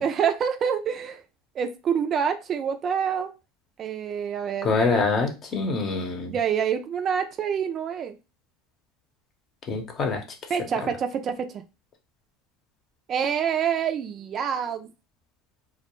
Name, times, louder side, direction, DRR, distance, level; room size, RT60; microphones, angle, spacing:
voice 1, 0.0-1.2 1.6-3.3 3.8-4.7 6.3-8.2 10.5-11.6 13.1-14.9, right 7 dB, 40° right, 8 dB, 0.3 m, -26 dB
voice 2, 4.6-6.4 9.7-10.2, left 4 dB, 40° left, 4 dB, 0.8 m, -25 dB
2.3 x 2.1 x 3.0 m, 0.28 s
hypercardioid pair, 90°, 0 cm